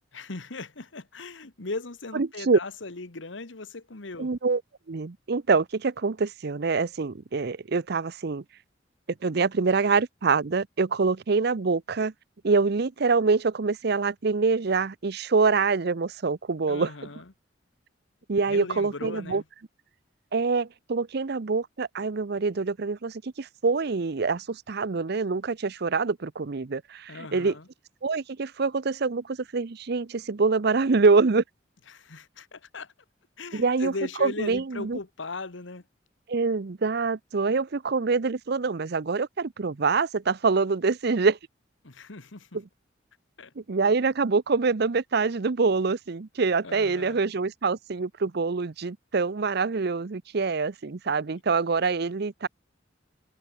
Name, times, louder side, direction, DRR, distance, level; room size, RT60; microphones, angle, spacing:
voice 1, 0.1-4.3 16.7-17.3 18.5-19.4 27.1-27.7 31.9-32.9 33.4-35.8 41.8-42.5 43.4-43.5 46.6-47.3, left 3 dB, 75° left, 1.5 m, -38 dB
voice 2, 2.1-2.6 4.2-4.6 4.9-8.4 9.2-12.1 12.4-16.9 18.3-19.4 20.3-27.5 28.0-31.4 33.5-33.9 34.2-35.0 36.3-41.4 43.6-52.5, right 4 dB, 55° right, 0.6 m, -25 dB
head